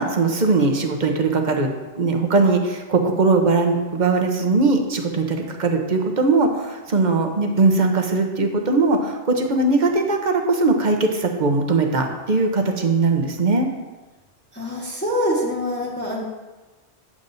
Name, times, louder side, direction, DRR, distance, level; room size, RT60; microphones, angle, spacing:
voice 1, 0.0-1.7 1.9-13.7, right 3 dB, 45° right, 3 dB, 0.9 m, -20 dB
voice 2, 14.5-16.2, equal, 10° left, -6 dB, 1.3 m, -25 dB
10.0 x 7.4 x 2.7 m, 1.2 s
omnidirectional pair, 1.2 m